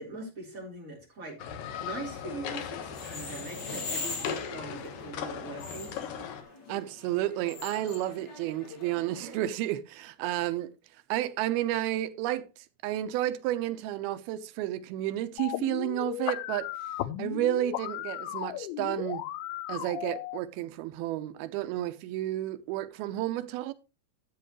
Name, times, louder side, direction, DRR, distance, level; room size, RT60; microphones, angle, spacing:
voice 1, 0.0-1.4 1.8-5.9, right 2 dB, 20° right, 3.9 m, -41 dB
sound 1, 1.4-6.4, left 7 dB, 70° left, 2.7 m, -38 dB
sound 2, 2.9-9.4, left 3 dB, 35° left, 1.9 m, -42 dB
voice 2, 6.7-10.7 11.1-12.5 12.8-16.7 17.2-19.2 19.7-23.7, right 14 dB, 90° right, 2.6 m, -31 dB
sound 3, 15.4-20.4, left 14 dB, 90° left, 2.6 m, -35 dB
12.5 x 8.5 x 3.0 m
omnidirectional pair, 4.4 m